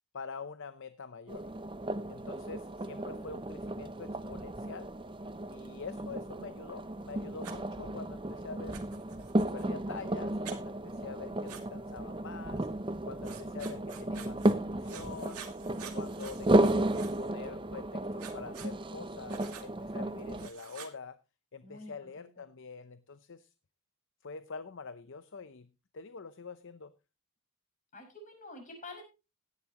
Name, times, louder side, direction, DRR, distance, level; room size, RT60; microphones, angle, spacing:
voice 1, 0.1-1.5 2.1-4.9 5.5-8.8 9.4-12.7 13.1-15.4 15.9-16.9 17.2-21.2 21.5-23.5 24.2-26.9, left 5 dB, 55° left, 13 dB, 0.7 m, -45 dB
sound 1, 1.3-20.5, right 1 dB, 20° right, 0.6 m, -34 dB
voice 2, 2.8-3.5 11.2-11.6 19.9-20.3 21.6-22.4 27.9-29.0, left 2 dB, 35° left, 3 dB, 6.1 m, -49 dB
Writing, 7.4-7.6 8.7-9.6 10.4-10.6 11.5-11.6 13.2-14.5 14.8-17.3 18.2-18.7 19.3-19.7 20.3-20.9, right 8 dB, 90° right, 2.4 m, -48 dB
17.0 x 11.0 x 2.9 m, 0.29 s
head